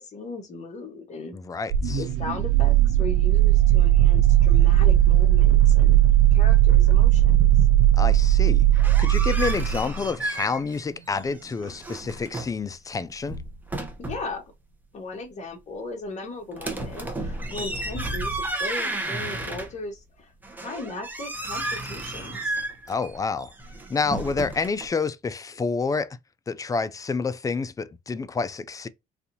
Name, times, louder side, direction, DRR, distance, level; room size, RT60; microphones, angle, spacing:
voice 1, 0.0-1.4 2.0-6.0 6.3-7.5 14.0-14.4 14.9-22.6, left 3 dB, 45° left, 1.6 m, -37 dB
voice 2, 1.3-2.0 7.9-8.6 9.0-13.4 22.9-23.5 23.9-26.2 26.5-28.9, left 4 dB, 20° left, 0.4 m, -28 dB
sound 1, 1.7-9.9, right 12 dB, 85° right, 0.6 m, -17 dB
sound 2, 8.6-10.8 11.1-12.6 13.1-14.3 16.6-20.0 20.4-24.9, right 2 dB, 10° right, 1.0 m, -32 dB
4.1 x 2.6 x 2.7 m
cardioid pair, 110°, 17 cm